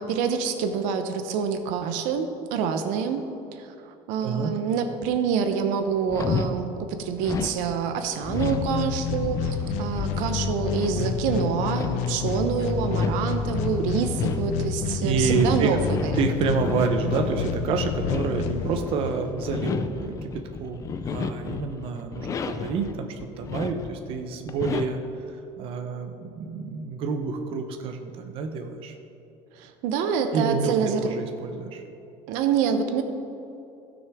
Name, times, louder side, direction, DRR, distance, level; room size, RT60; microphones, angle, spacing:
voice 1, 0.0-3.2 3.5-16.1 29.6-31.1 32.3-33.0, right 6 dB, 80° right, 7 dB, 0.7 m, -26 dB
sound 1, 6.1-6.5 7.2-22.9 23.2-24.1 24.4-25.1, left 5 dB, 25° left, 0.4 m, -33 dB
sound 2, 8.4-19.3, left 6 dB, 65° left, 0.7 m, -29 dB
voice 2, 15.0-15.8 16.1-25.0 25.6-28.9 30.3-30.8 31.0-31.8, right 5 dB, 45° right, 5 dB, 0.7 m, -28 dB
15.5 x 6.3 x 3.5 m, 2.8 s
cardioid pair, 170°, 13 cm